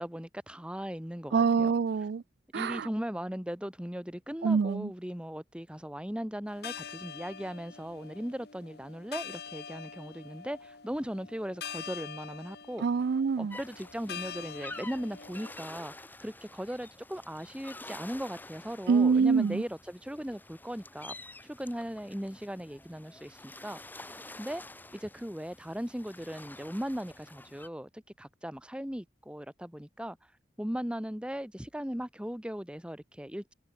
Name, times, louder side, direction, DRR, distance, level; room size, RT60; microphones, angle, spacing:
voice 1, 0.0-1.7 2.5-12.9 13.4-15.9 16.2-21.2 21.4-24.1 24.4-24.6 24.9-30.2 30.6-33.5, equal, 5° right, 1.3 m, -38 dB
voice 2, 1.3-2.2 2.5-2.9 4.4-4.9 12.8-13.6 18.9-19.6, right 5 dB, 60° right, 0.4 m, -25 dB
sound 1, 6.5-15.5, left 7 dB, 60° left, 1.8 m, -45 dB
sound 2, 13.5-27.7, left 2 dB, 10° left, 3.0 m, -49 dB
head